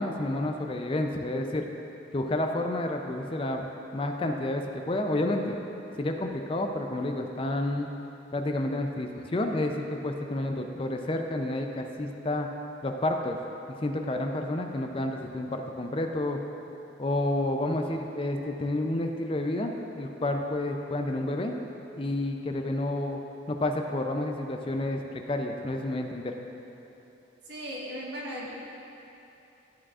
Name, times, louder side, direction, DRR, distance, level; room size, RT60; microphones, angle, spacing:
voice 1, 0.0-1.7 2.1-5.6 6.0-7.9 8.3-12.5 12.8-13.4 13.8-16.4 17.0-21.6 22.0-23.2 23.5-26.3, left 1 dB, 30° left, 4 dB, 0.4 m, -30 dB
voice 2, 27.4-28.5, equal, 65° right, -5 dB, 1.5 m, -37 dB
12.0 x 7.4 x 2.4 m, 3.0 s
head